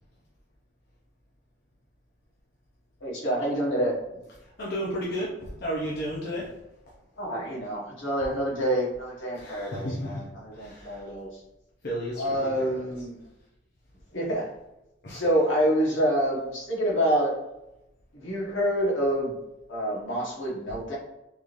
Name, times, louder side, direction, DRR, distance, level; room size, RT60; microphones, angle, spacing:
voice 1, 3.0-3.9 7.2-11.4 12.1-13.2 14.1-14.5 15.1-17.3 18.1-19.4 19.7-21.0, equal, 80° left, -5 dB, 1.3 m, -27 dB
voice 2, 4.6-6.5 9.3-10.2 10.5-11.0 11.8-12.7 15.0-15.5, equal, 55° left, -5 dB, 0.6 m, -33 dB
3.5 x 3.1 x 2.5 m, 0.90 s
head